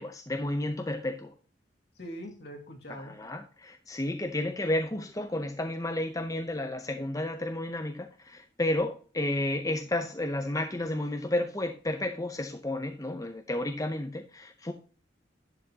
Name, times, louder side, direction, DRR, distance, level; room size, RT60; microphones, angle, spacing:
voice 1, 0.0-1.3 3.0-14.7, left 1 dB, 20° left, 0.6 m, -32 dB
voice 2, 2.0-3.2, equal, 60° left, 2.3 m, -42 dB
11.0 x 7.6 x 2.8 m
head